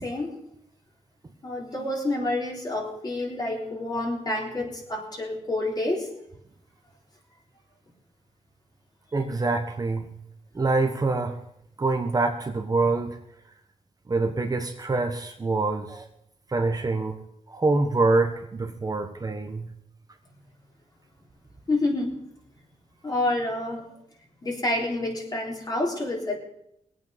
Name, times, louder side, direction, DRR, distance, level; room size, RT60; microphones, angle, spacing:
voice 1, 0.0-0.4 1.4-6.1 21.7-22.2 23.0-23.9 24.4-26.4, left 2 dB, 30° left, -1 dB, 3.8 m, -28 dB
voice 2, 9.1-10.1 10.5-11.4 11.8-13.2 14.1-16.0 16.5-17.2 17.5-19.7, right 3 dB, 30° right, 4 dB, 1.3 m, -25 dB
20.5 x 8.6 x 5.3 m, 0.74 s
wide cardioid pair, 110°, 13 cm